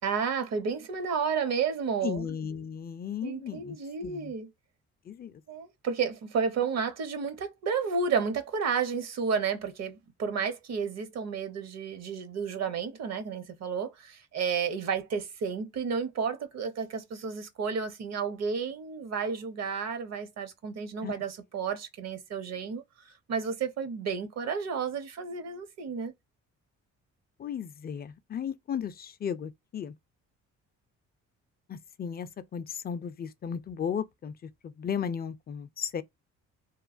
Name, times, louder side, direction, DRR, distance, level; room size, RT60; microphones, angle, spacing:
voice 1, 0.0-2.3 3.2-4.5 5.5-22.8 23.3-26.1, right 6 dB, 60° right, 0.7 m, -31 dB
voice 2, 2.0-3.8 4.0-4.3 5.1-5.3 21.0-21.2 27.4-29.9 31.7-36.0, left 7 dB, 35° left, 0.4 m, -35 dB
3.0 x 2.1 x 2.4 m
cardioid pair, 90°, 30 cm